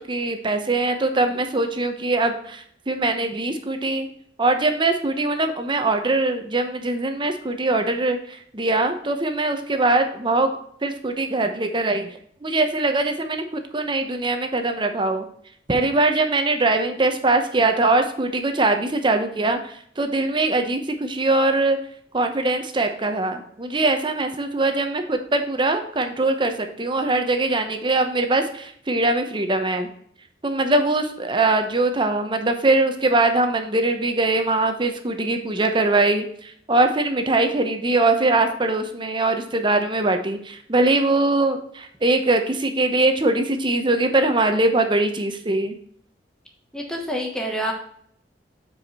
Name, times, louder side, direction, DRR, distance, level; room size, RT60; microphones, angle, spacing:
voice 1, 0.1-4.1 4.4-10.5 10.8-13.4 13.7-15.2 15.7-21.8 22.1-29.9 30.4-45.8, right 2 dB, 25° right, 6 dB, 0.8 m, -22 dB
voice 2, 46.7-47.7, equal, 5° left, 1 dB, 1.2 m, -27 dB
7.6 x 4.9 x 4.2 m, 0.63 s
head